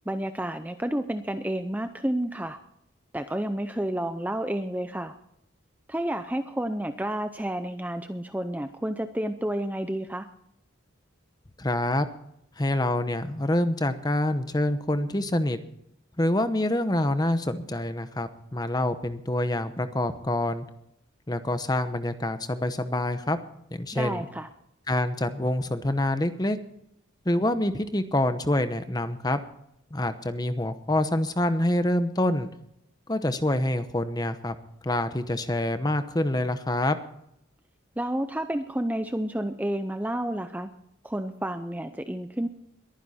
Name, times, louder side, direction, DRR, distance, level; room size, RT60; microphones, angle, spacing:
voice 1, 0.1-2.6 3.1-5.1 5.9-10.3 23.9-24.5 38.0-40.7 41.0-42.5, right 1 dB, 10° right, 8 dB, 0.6 m, -30 dB
voice 2, 11.6-12.1 12.6-15.6 16.2-20.6 21.3-23.4 23.7-24.3 24.9-26.6 27.2-29.4 29.9-32.5 33.1-34.5 34.8-37.0, left 1 dB, 20° left, 10 dB, 0.9 m, -26 dB
22.0 x 10.0 x 4.3 m, 0.76 s
head